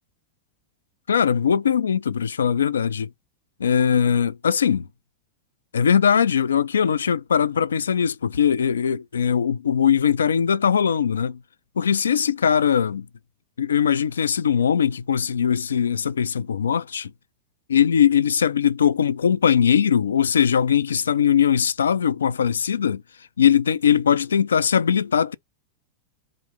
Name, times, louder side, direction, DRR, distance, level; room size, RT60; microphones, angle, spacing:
voice 1, 1.1-3.1 3.6-4.9 5.7-11.4 11.8-13.1 13.6-17.1 17.7-23.0 23.4-25.3, left 8 dB, 70° left, 0.3 m, -20 dB
3.8 x 2.6 x 4.7 m
figure-of-eight pair, 90°, 0 cm